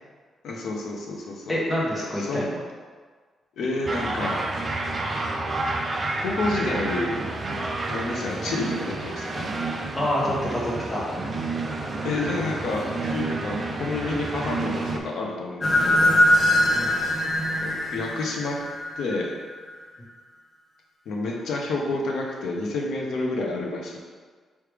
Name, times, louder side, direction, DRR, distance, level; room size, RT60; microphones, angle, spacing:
voice 1, 0.4-1.6 2.2-2.5 3.6-4.4 6.2-7.2 7.9-9.5 12.0-16.1 17.6-18.6 19.0-19.3 21.1-24.0, left 2 dB, 70° left, -1 dB, 0.7 m, -29 dB
voice 2, 1.5-2.6 9.9-11.1 16.7-16.9, equal, 15° left, -6 dB, 1.1 m, -27 dB
sound 1, 3.8-15.0, right 2 dB, 25° right, 0.4 m, -30 dB
sound 2, 15.6-19.6, left 1 dB, 30° left, 0.5 m, -22 dB
4.7 x 3.2 x 3.4 m, 1.5 s
cardioid pair, 155°, 0 cm